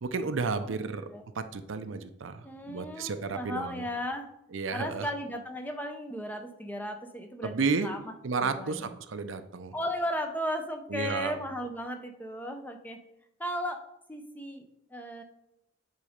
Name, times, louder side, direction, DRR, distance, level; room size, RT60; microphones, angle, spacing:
voice 1, 0.0-1.0 1.4-3.8 4.5-5.1 7.4-7.9 8.2-9.7 10.9-11.4, right 4 dB, 65° right, 10 dB, 0.5 m, -32 dB
voice 2, 2.4-4.3 4.7-8.1 8.4-9.0 9.7-13.0 13.4-13.8 14.1-14.6 14.9-15.2, equal, 10° left, 5 dB, 0.6 m, -35 dB
8.3 x 3.9 x 5.0 m, 0.85 s
head